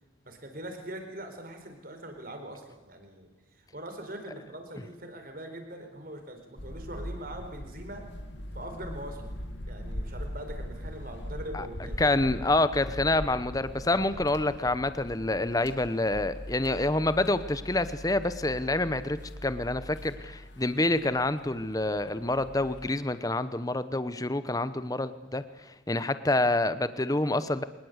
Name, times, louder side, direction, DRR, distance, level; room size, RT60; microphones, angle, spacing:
voice 1, 0.2-8.1 8.5-9.3 9.7-12.2, right 1 dB, 45° right, 6 dB, 4.3 m, -42 dB
sound 1, 6.6-22.9, equal, 65° left, 2.3 m, -41 dB
voice 2, 12.0-27.6, left 2 dB, 20° left, 13 dB, 0.9 m, -27 dB
24.0 x 20.5 x 8.1 m, 1.0 s
head